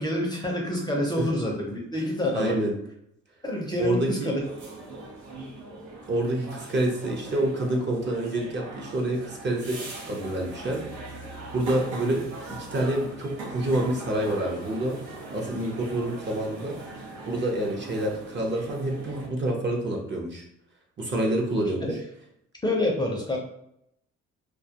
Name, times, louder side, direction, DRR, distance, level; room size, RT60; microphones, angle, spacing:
voice 1, 0.0-2.6 3.4-4.4 21.8-22.0 22.6-23.4, left 1 dB, 15° left, -1 dB, 0.5 m, -27 dB
voice 2, 2.3-2.7 3.8-4.3 6.1-10.8 11.5-15.0 15.3-16.8 17.2-20.4 21.0-21.9, right 1 dB, 35° right, -1 dB, 0.6 m, -27 dB
sound 1, 4.4-19.3, right 2 dB, 90° right, 0.7 m, -40 dB
2.2 x 2.1 x 2.7 m, 0.74 s
cardioid pair, 90°, 30 cm